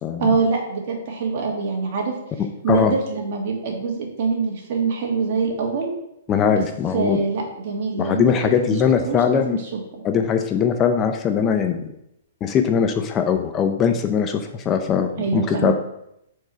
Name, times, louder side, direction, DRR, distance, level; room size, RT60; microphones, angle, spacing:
voice 1, 0.2-2.1 2.6-5.9 6.5-6.6 6.9-9.8 15.2-15.7, right 4 dB, 45° right, 0 dB, 1.8 m, -24 dB
voice 2, 6.3-7.2 8.0-9.6 10.0-11.8 12.4-15.7, left 7 dB, 20° left, 6 dB, 0.4 m, -20 dB
4.6 x 4.5 x 5.8 m, 0.82 s
hypercardioid pair, 155°, 0 cm